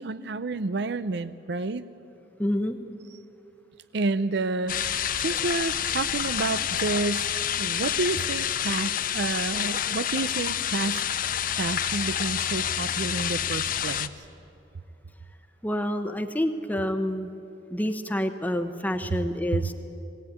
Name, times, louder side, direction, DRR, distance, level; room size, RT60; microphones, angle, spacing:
voice 1, 0.0-1.9 3.9-7.3 7.6-11.0 11.6-14.2 19.5-19.7, right 3 dB, 70° right, 14 dB, 0.5 m, -30 dB
voice 2, 2.4-2.8 15.6-17.3 17.7-19.7, equal, 10° left, 7 dB, 0.9 m, -28 dB
sound 1, 4.7-14.1, left 9 dB, 50° left, 0.7 m, -28 dB
21.0 x 18.0 x 9.4 m, 2.7 s
head